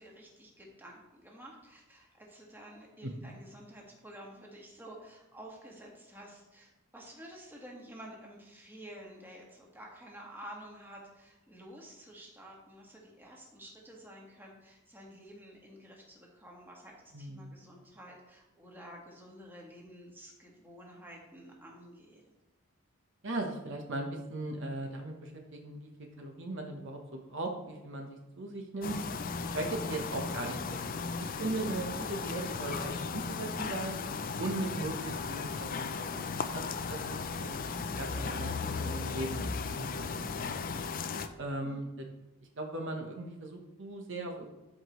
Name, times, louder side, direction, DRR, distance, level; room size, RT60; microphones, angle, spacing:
voice 1, 0.0-22.2 41.6-41.9, equal, 10° right, -2 dB, 1.5 m, -51 dB
voice 2, 17.1-17.5 23.2-25.9 26.2-29.0 29.4-30.8 31.2-34.0 34.4-37.5 37.9-39.4 39.7-40.7 41.4-42.1 42.6-44.5, right 2 dB, 55° right, 2 dB, 0.9 m, -38 dB
sound 1, 28.8-41.3, left 5 dB, 40° left, 0.4 m, -36 dB
13.0 x 4.8 x 3.0 m, 1.0 s
head